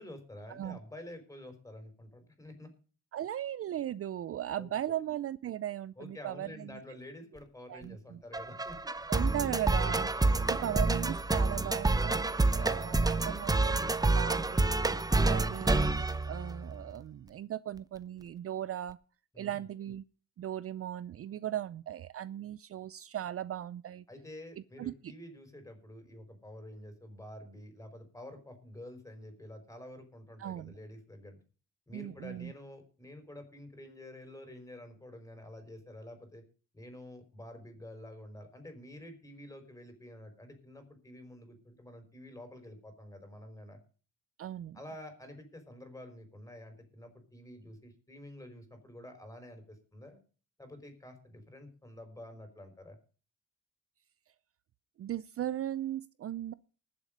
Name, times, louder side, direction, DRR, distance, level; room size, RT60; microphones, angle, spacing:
voice 1, 0.0-2.7 4.6-4.7 6.0-8.9 10.2-10.8 12.5-13.0 19.3-19.6 24.1-31.4 31.9-36.4 36.7-43.8 44.7-50.2 50.6-53.0, left 1 dB, 10° left, 5.2 m, -49 dB
voice 2, 3.1-6.8 7.7-8.2 9.1-10.1 10.6-14.8 15.2-15.9 16.3-19.0 19.4-20.0 20.4-24.0 24.6-25.1 30.4-30.7 31.9-32.5 44.4-44.8 55.0-56.5, right 11 dB, 50° right, 0.5 m, -38 dB
sound 1, 8.3-16.9, right 2 dB, 10° right, 0.8 m, -28 dB
19.5 x 7.5 x 5.2 m
cardioid pair, 90°, 30 cm